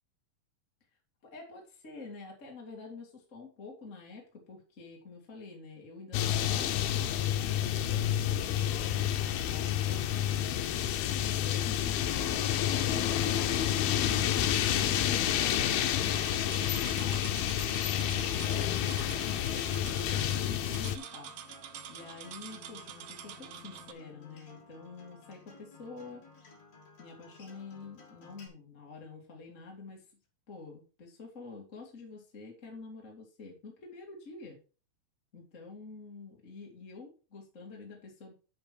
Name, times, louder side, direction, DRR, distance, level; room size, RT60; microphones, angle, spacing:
voice 1, 1.2-19.6 19.9-21.3 21.9-26.2 27.0-30.0 30.5-34.6 35.3-38.3, left 4 dB, 25° left, -1 dB, 1.8 m, -48 dB
sound 1, 6.1-21.0, left 10 dB, 80° left, 2.6 m, -29 dB
sound 2, 16.1-23.9, right 9 dB, 80° right, 1.6 m, -46 dB
Acoustic guitar, 20.5-28.5, left 4 dB, 45° left, 3.0 m, -55 dB
7.9 x 6.9 x 4.4 m, 0.34 s
omnidirectional pair, 4.4 m